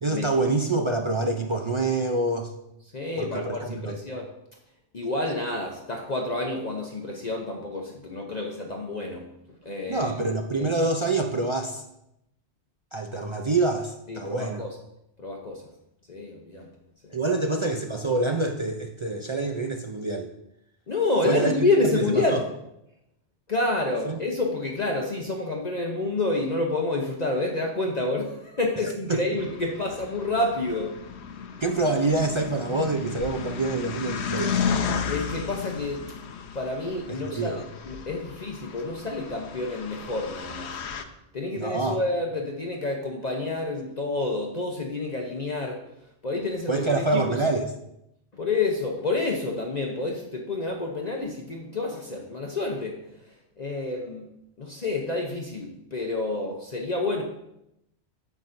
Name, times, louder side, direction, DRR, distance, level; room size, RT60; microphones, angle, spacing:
voice 1, 0.0-2.5 3.2-4.0 9.9-11.8 12.9-14.6 17.1-20.3 21.2-22.4 24.0-24.2 29.1-29.2 31.6-34.6 37.1-37.7 41.6-42.0 46.7-47.7, right 3 dB, 50° right, 3 dB, 0.3 m, -26 dB
voice 2, 2.9-4.3 4.9-9.3 9.6-10.1 10.6-10.7 14.1-14.8 15.2-15.7 16.1-16.7 17.0-17.1 20.9-22.4 23.5-31.0 35.1-36.0 36.5-40.8 41.3-45.8 46.2-47.3 48.3-53.0 53.6-54.3 54.6-57.2, left 2 dB, 40° left, 1 dB, 0.8 m, -28 dB
sound 1, 29.4-41.0, left 6 dB, 75° left, 0.9 m, -33 dB
9.3 x 7.4 x 2.6 m, 0.83 s
omnidirectional pair, 1.2 m